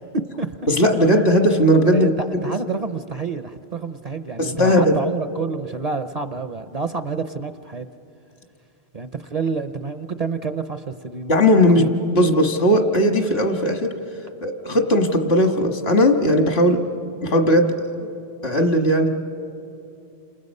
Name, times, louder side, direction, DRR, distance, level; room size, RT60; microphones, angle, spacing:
voice 1, 0.0-0.7 1.9-7.9 8.9-11.3 11.7-11.9, right 4 dB, 45° right, 10 dB, 0.6 m, -28 dB
voice 2, 0.7-2.1 4.4-4.9 11.3-13.9 14.4-16.8 17.2-17.7 18.0-18.1 18.4-19.1, equal, 70° left, 5 dB, 1.8 m, -17 dB
29.5 x 27.5 x 5.4 m, 2.6 s
omnidirectional pair, 1.1 m